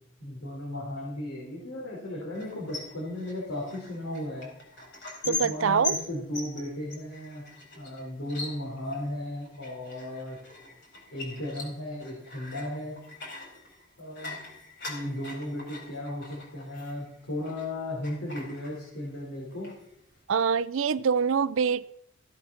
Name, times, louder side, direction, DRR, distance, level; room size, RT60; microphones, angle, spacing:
voice 1, 0.2-4.5 5.2-7.5 7.7-10.4 11.1-13.0 14.0-14.4 14.9-19.7, left 1 dB, 75° left, 4.5 m, -35 dB
sound 1, 2.3-17.7 18.0-19.2 19.5-20.2, left 3 dB, 55° left, 4.1 m, -41 dB
voice 2, 5.3-5.9 20.3-21.9, right 6 dB, 65° right, 0.4 m, -25 dB
15.5 x 8.4 x 5.7 m
head